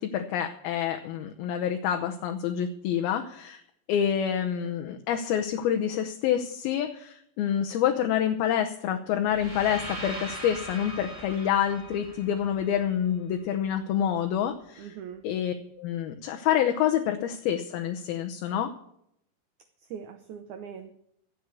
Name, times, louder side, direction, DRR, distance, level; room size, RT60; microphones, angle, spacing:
voice 1, 0.0-3.6 3.9-14.9 15.2-18.7, left 9 dB, 80° left, 5 dB, 2.7 m, -27 dB
sound 1, 9.2-13.3, right 1 dB, 35° right, 0.5 m, -40 dB
voice 2, 14.8-15.3 19.8-21.0, right 8 dB, 85° right, 9 dB, 1.7 m, -41 dB
12.5 x 8.0 x 8.2 m, 0.72 s
omnidirectional pair, 4.5 m